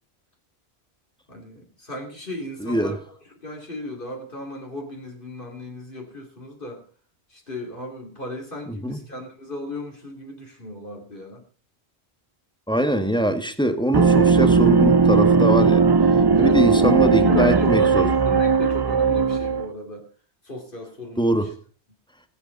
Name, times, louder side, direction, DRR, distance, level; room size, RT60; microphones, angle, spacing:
voice 1, 1.3-3.0 3.4-6.8 7.3-11.4 16.3-20.0 20.4-21.5, left 1 dB, 50° left, 0 dB, 3.0 m, -35 dB
voice 2, 2.6-3.0 8.7-9.0 12.7-15.8 16.4-18.1 21.2-21.5, equal, 5° left, 8 dB, 1.4 m, -22 dB
sound 1, 13.9-19.7, right 4 dB, 30° right, 0.5 m, -17 dB
20.5 x 8.5 x 3.9 m, 0.38 s
omnidirectional pair, 1.1 m